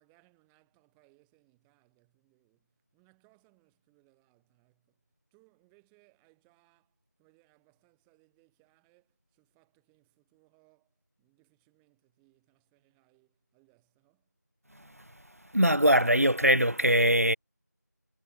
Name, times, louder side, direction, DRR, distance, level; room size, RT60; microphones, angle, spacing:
voice 1, 0.0-5.0 5.3-14.4, right 40 dB or more, ahead, 6.1 m, -68 dB
voice 2, 15.5-17.4, equal, 55° right, 2.2 m, -22 dB
figure-of-eight pair, 180°, 10 cm